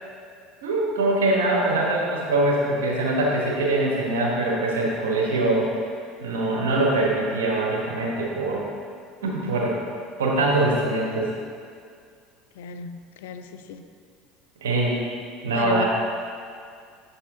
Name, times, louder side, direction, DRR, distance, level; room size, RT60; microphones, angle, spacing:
voice 1, 0.6-5.7 6.2-8.6 9.2-9.8 10.2-11.3 14.6-15.0 15.4-15.9, right 2 dB, 90° right, -3 dB, 1.2 m, -23 dB
voice 2, 12.6-13.8 15.5-15.8, left 7 dB, 80° left, 9 dB, 0.3 m, -34 dB
7.0 x 4.3 x 3.6 m, 2.2 s
hypercardioid pair, 85°, 0 cm